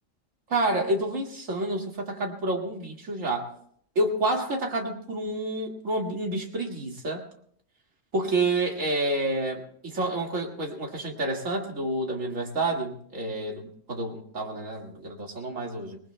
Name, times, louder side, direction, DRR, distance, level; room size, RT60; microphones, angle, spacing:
voice 1, 0.5-3.5 4.0-7.2 8.1-16.0, right 2 dB, 80° right, 1 dB, 2.4 m, -29 dB
26.0 x 20.0 x 2.2 m, 0.63 s
omnidirectional pair, 1.3 m